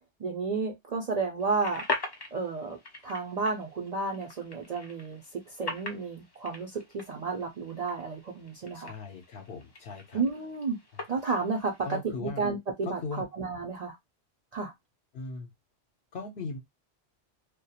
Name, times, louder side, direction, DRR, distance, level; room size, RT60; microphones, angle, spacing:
voice 1, 0.2-1.8 2.3-2.8 3.0-8.9 10.1-10.8 11.1-14.0 14.5-14.7, right 4 dB, 50° right, 0.5 m, -32 dB
sound 1, 1.4-12.0, left 3 dB, 35° left, 0.4 m, -42 dB
voice 2, 8.7-10.2 11.8-12.4 12.8-13.3 15.1-15.5 16.1-16.6, left 4 dB, 70° left, 0.9 m, -38 dB
2.3 x 2.2 x 2.7 m
omnidirectional pair, 1.1 m